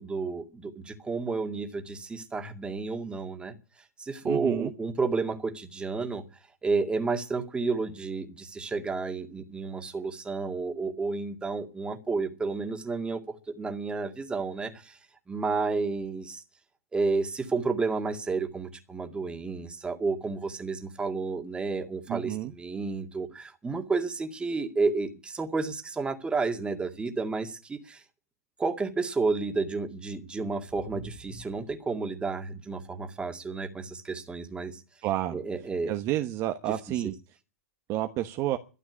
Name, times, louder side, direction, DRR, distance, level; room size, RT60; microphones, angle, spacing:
voice 1, 0.0-3.5 4.0-6.2 6.6-15.0 15.3-16.4 16.9-28.0 28.6-34.8 35.3-35.9, right 4 dB, 10° right, 2.2 m, -31 dB
voice 2, 4.2-4.7 22.1-22.5 35.0-35.4 35.9-37.1 37.9-38.6, right 13 dB, 40° right, 1.1 m, -30 dB
13.0 x 9.8 x 9.8 m
hypercardioid pair, 120°, 8 cm